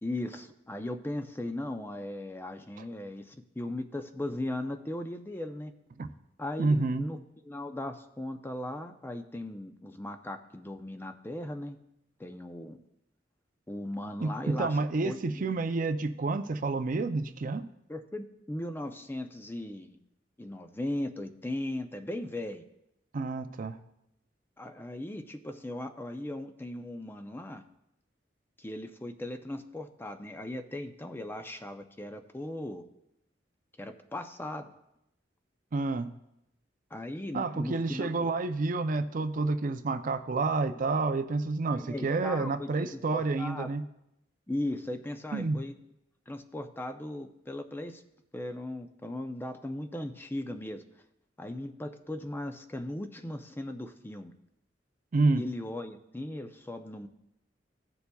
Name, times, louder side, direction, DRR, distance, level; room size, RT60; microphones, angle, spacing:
voice 1, 0.0-5.7 6.4-7.2 7.4-11.8 12.2-12.8 13.7-15.4 17.9-20.0 20.4-22.6 24.6-27.6 28.6-32.9 33.8-34.7 36.9-38.1 41.8-43.7 44.5-45.7 46.3-48.0 48.3-50.8 51.4-54.3 55.3-57.1, left 1 dB, 10° left, 7 dB, 0.5 m, -38 dB
voice 2, 6.6-7.0 14.2-17.7 23.1-23.8 35.7-36.1 37.3-43.8 45.3-45.6 55.1-55.5, right 3 dB, 50° right, 9 dB, 0.5 m, -29 dB
16.5 x 6.9 x 2.3 m, 0.84 s
head